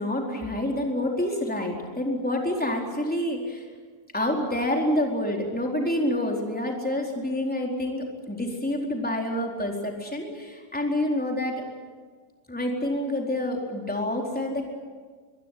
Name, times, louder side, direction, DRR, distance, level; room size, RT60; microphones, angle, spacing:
voice 1, 0.0-3.6 4.1-11.6 12.5-14.6, left 1 dB, ahead, 0 dB, 3.2 m, -27 dB
24.0 x 22.5 x 9.4 m, 1.5 s
omnidirectional pair, 5.9 m